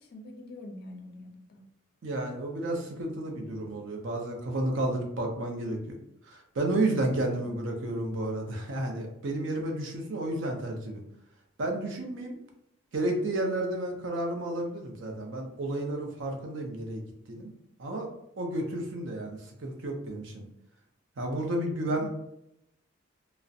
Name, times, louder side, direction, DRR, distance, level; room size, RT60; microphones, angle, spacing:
voice 1, 0.0-1.7 21.9-22.1, left 1 dB, 50° left, 3 dB, 0.4 m, -45 dB
voice 2, 2.0-6.0 6.3-11.0 11.6-12.4 12.9-17.0 17.3-17.5 17.8-18.1 18.4-20.4 21.2-22.1, right 1 dB, 70° right, 2 dB, 0.5 m, -31 dB
2.4 x 2.0 x 2.6 m, 0.79 s
head